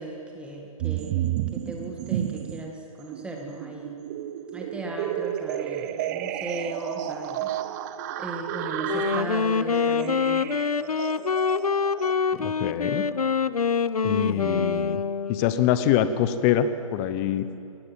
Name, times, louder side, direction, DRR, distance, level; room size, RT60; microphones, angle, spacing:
voice 1, 0.0-4.0 4.5-7.5 8.2-10.5 14.2-14.8, right 2 dB, 5° right, 1 dB, 1.9 m, -37 dB
sound 1, 0.8-2.7 3.1-12.1, right 12 dB, 30° right, 0.8 m, -32 dB
Wind instrument woodwind instrument, 8.8-15.6, left 5 dB, 80° left, 0.8 m, -25 dB
voice 2, 12.3-13.1 14.0-15.0 15.3-17.5, left 10 dB, 25° left, 12 dB, 1.0 m, -24 dB
22.5 x 19.0 x 7.7 m, 2.9 s
figure-of-eight pair, 135°, 19 cm